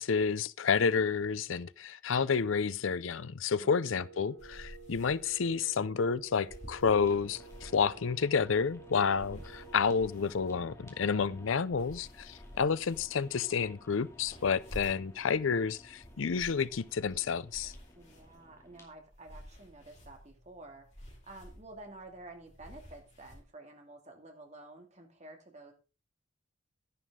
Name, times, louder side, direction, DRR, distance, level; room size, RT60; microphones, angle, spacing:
voice 1, 0.0-17.7, left 5 dB, 80° left, 0.5 m, -30 dB
Wind instrument woodwind instrument, 3.5-10.2, right 4 dB, 65° right, 1.2 m, -52 dB
voice 2, 3.6-4.3 18.0-25.7, right 2 dB, 35° right, 2.4 m, -51 dB
sound 1, 4.4-23.4, equal, 35° left, 4.4 m, -53 dB
sound 2, 6.9-18.8, left 1 dB, 15° left, 2.4 m, -56 dB
11.0 x 11.0 x 3.7 m
head